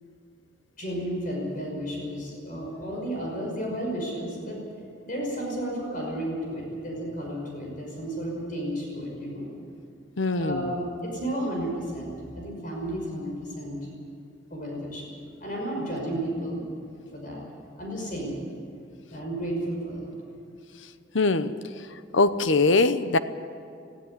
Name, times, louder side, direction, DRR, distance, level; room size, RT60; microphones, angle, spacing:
voice 1, 0.8-4.6 5.0-9.5 10.3-13.8 14.5-16.7 17.1-17.4 17.8-18.4 19.1-20.1, right 1 dB, 45° left, -1 dB, 5.7 m, -32 dB
voice 2, 10.2-10.7 21.1-21.5 22.1-23.2, left 3 dB, 75° left, 12 dB, 0.9 m, -22 dB
19.0 x 15.5 x 9.6 m, 2.5 s
head